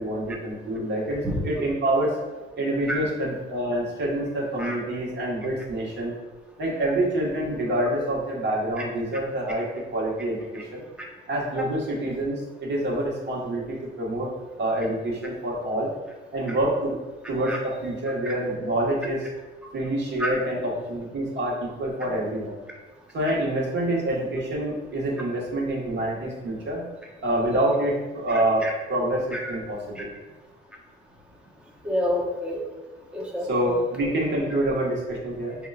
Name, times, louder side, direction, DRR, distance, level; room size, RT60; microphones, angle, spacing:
voice 1, 0.0-2.1 2.6-6.1 6.6-10.8 11.3-14.3 14.6-15.9 16.3-17.0 17.3-19.3 19.7-22.6 23.1-26.8 27.2-30.1 33.4-35.6, right 1 dB, 60° right, -3 dB, 1.5 m, -27 dB
voice 2, 31.8-32.6 33.1-33.8, equal, 5° right, -3 dB, 1.1 m, -28 dB
6.4 x 2.8 x 2.4 m, 1.2 s
cardioid pair, 90°, 20 cm